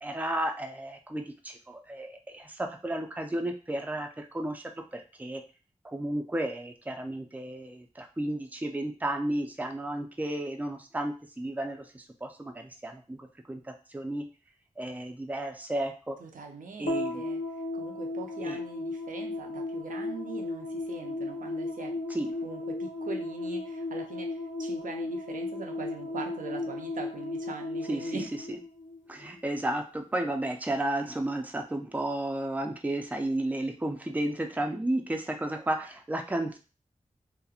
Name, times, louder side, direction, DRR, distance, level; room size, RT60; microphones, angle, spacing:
voice 1, 0.0-4.6 4.9-5.4 5.9-13.6 13.9-14.2 14.8-16.2 16.8-17.2 18.4-18.6 22.1-22.3 27.9-28.1 28.5-28.6 29.1-36.6, right 1 dB, 10° right, 3 dB, 0.4 m, -33 dB
voice 2, 16.2-22.0 22.4-28.3, right 4 dB, 80° right, 2 dB, 0.5 m, -42 dB
sound 1, 16.9-29.4, left 2 dB, 85° left, 0.5 m, -35 dB
2.8 x 2.1 x 2.4 m, 0.34 s
cardioid pair, 45°, 13 cm